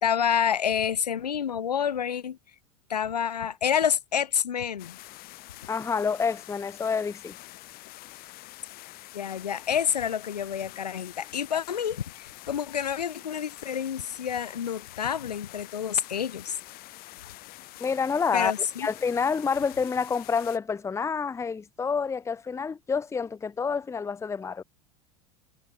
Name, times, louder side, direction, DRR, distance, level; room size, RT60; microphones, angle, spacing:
voice 1, 0.0-2.4 2.9-5.0 9.1-16.6 18.3-18.9, left 8 dB, 75° left, 1.7 m, -28 dB
sound 1, 4.8-20.6, left 19 dB, 45° left, 7.1 m, -46 dB
voice 2, 5.7-7.3 17.8-18.5 18.8-24.6, left 5 dB, 15° left, 0.8 m, -28 dB
figure-of-eight pair, 80°, 20 cm